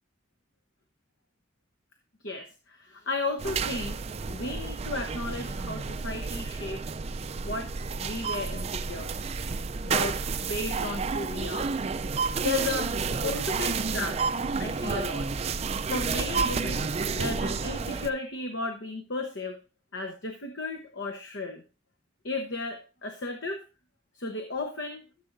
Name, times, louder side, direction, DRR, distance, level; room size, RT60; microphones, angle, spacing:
voice 1, 2.2-4.0 4.3-6.9 7.4-7.7 8.0-9.1 9.8-11.7 12.4-12.9 13.2-14.2 14.6-15.3 15.9-19.6 19.9-21.6 22.2-23.6 24.1-25.0, left 3 dB, 60° left, 5 dB, 1.0 m, -34 dB
sound 1, 3.4-18.1, right 4 dB, 30° right, 0.4 m, -30 dB
14.0 x 7.3 x 2.6 m, 0.33 s
head